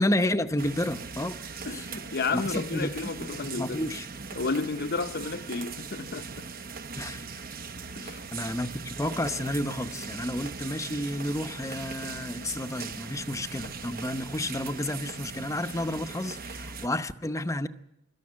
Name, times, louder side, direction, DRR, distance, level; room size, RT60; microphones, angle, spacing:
voice 1, 0.0-1.4 1.7-1.8 2.3-2.9 3.6-4.1 7.0-7.3 8.3-17.7, left 1 dB, 15° left, 0.8 m, -31 dB
sound 1, 0.6-16.9, right 5 dB, 45° right, 0.9 m, -40 dB
voice 2, 1.7-3.9 4.3-6.5 8.0-8.2, left 4 dB, 50° left, 0.8 m, -32 dB
24.5 x 13.5 x 9.8 m
head